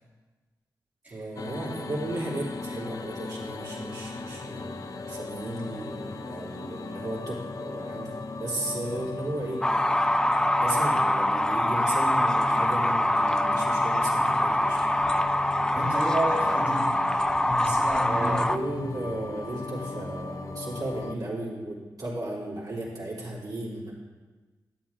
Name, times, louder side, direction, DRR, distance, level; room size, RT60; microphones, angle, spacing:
voice 1, 1.1-10.2 10.5-14.8 18.0-23.9, right 1 dB, 55° right, -6 dB, 3.1 m, -35 dB
sound 1, 1.4-21.1, left 3 dB, 50° left, 0.7 m, -37 dB
sound 2, 9.6-18.6, left 1 dB, 10° left, 0.5 m, -24 dB
voice 2, 15.7-17.0 17.3-18.4 18.7-18.9, right 1 dB, 20° right, -5 dB, 2.3 m, -31 dB
11.5 x 7.6 x 3.6 m, 1.3 s
supercardioid pair, 45°, 8 cm